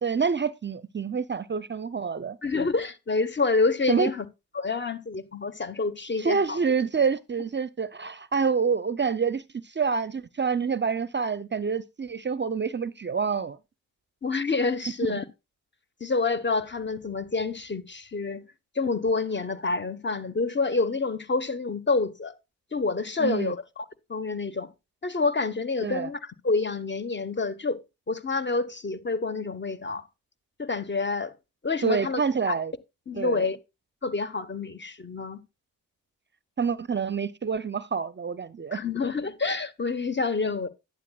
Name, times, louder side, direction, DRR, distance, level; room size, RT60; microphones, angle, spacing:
voice 1, 0.0-2.4 3.9-4.1 6.2-13.6 15.0-15.2 23.2-23.5 25.8-26.1 31.8-32.7 33.1-33.5 36.6-38.8, right 5 dB, 30° right, 0.5 m, -27 dB
voice 2, 2.4-4.2 4.5-6.6 14.2-15.2 16.0-18.4 18.7-22.3 22.7-23.8 24.1-24.7 25.0-27.8 28.1-30.0 30.6-31.3 31.6-32.2 32.5-32.6 33.1-33.6 34.0-35.4 38.7-40.7, left 3 dB, 30° left, 1.1 m, -28 dB
11.0 x 9.1 x 2.3 m
supercardioid pair, 50°, 35 cm